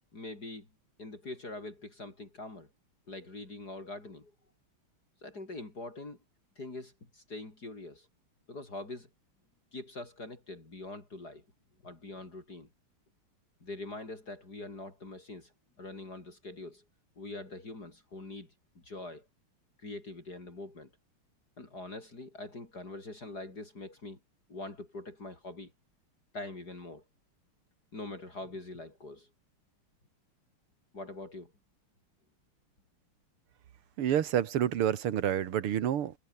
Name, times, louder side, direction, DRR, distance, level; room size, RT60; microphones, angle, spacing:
voice 1, 0.1-0.7 1.0-2.7 3.1-4.3 5.2-6.2 6.6-8.1 8.5-9.1 9.7-11.4 11.8-12.7 13.6-15.5 15.8-16.8 17.2-18.5 18.8-19.3 19.8-20.9 21.6-24.2 24.5-25.7 26.3-27.0 27.9-29.3 30.9-31.5, left 2 dB, 45° left, 5.5 m, -43 dB
voice 2, 34.0-36.1, right 10 dB, 85° right, 2.3 m, -28 dB
omnidirectional pair, 2.4 m